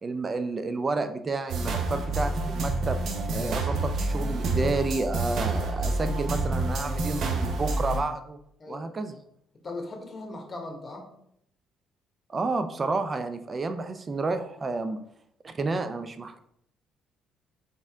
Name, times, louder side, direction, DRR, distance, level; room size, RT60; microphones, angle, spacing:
voice 1, 0.0-3.0 3.3-8.4 8.7-9.2 12.3-15.0 15.4-16.4, right 3 dB, 35° right, 9 dB, 0.5 m, -30 dB
sound 1, 1.5-8.0, right 2 dB, 65° right, 0.8 m, -28 dB
voice 2, 9.6-11.1, left 2 dB, 40° left, 3 dB, 1.3 m, -39 dB
4.2 x 3.6 x 3.6 m, 0.72 s
hypercardioid pair, 55°, 0 cm